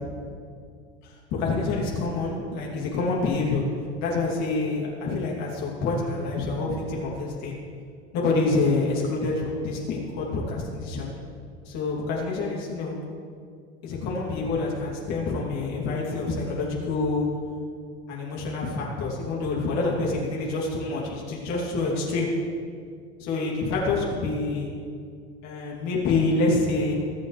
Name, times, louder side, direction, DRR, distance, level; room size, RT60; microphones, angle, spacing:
voice 1, 1.0-3.6 4.0-7.6 8.1-11.1 11.6-13.0 13.8-17.3 18.1-22.3 23.2-24.7 25.4-26.9, left 3 dB, 55° left, -3 dB, 2.8 m, -27 dB
22.0 x 7.4 x 3.3 m, 2.2 s
hypercardioid pair, 85°, 32 cm